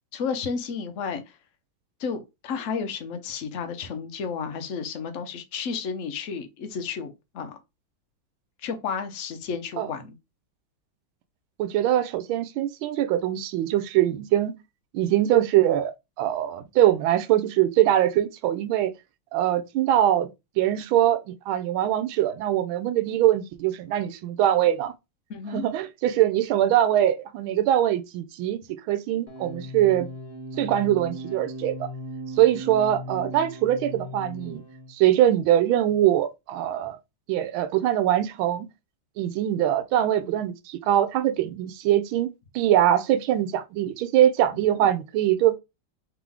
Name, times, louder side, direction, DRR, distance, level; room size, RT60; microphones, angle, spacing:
voice 1, 0.1-1.4 2.0-7.6 8.6-10.1 25.3-25.6 44.5-44.9, left 6 dB, 60° left, 0.8 m, -32 dB
voice 2, 11.6-14.6 14.9-18.9 19.3-20.3 20.6-24.9 25.5-28.6 28.9-30.1 30.6-31.9 32.4-34.6 34.9-37.0 37.3-38.7 39.2-45.6, right 12 dB, 85° right, 1.4 m, -22 dB
sound 1, 29.3-34.9, equal, 10° right, 1.0 m, -38 dB
3.7 x 3.4 x 3.4 m
omnidirectional pair, 2.2 m